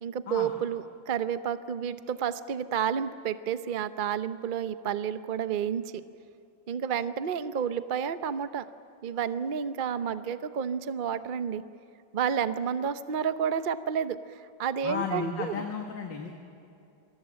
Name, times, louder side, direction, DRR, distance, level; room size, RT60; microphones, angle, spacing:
voice 1, 0.0-6.0 6.7-8.6 9.0-11.6 12.1-15.6, right 8 dB, 50° right, 11 dB, 0.6 m, -30 dB
voice 2, 14.8-16.3, left 6 dB, 85° left, 3 dB, 2.3 m, -34 dB
29.0 x 22.5 x 7.6 m, 2.6 s
omnidirectional pair, 1.9 m